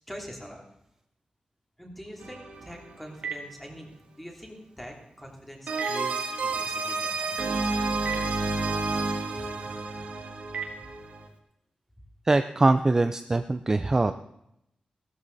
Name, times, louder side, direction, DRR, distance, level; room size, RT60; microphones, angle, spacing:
voice 1, 0.1-0.6 1.8-3.9 4.2-7.7 9.4-10.1 10.8-10.9, equal, 5° left, 0 dB, 3.1 m, -44 dB
sound 1, 2.2-3.2 5.7-11.3, right 3 dB, 90° right, 2.0 m, -30 dB
Telephone, 2.5-11.4, right 6 dB, 60° right, 2.0 m, -43 dB
voice 2, 12.2-14.1, right 2 dB, 20° right, 9 dB, 0.5 m, -22 dB
17.0 x 13.0 x 4.1 m, 0.80 s
wide cardioid pair, 160°, 2 cm